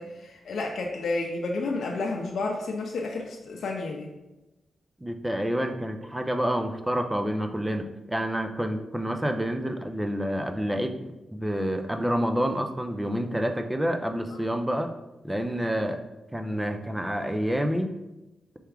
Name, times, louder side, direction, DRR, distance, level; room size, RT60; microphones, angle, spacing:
voice 1, 0.0-4.1, left 3 dB, 75° left, 0 dB, 0.5 m, -31 dB
voice 2, 5.0-11.1 11.3-14.9 15.2-16.0 16.3-17.9, equal, 10° right, 7 dB, 0.4 m, -28 dB
4.5 x 3.4 x 3.4 m, 1.0 s
cardioid pair, 80°, 0 cm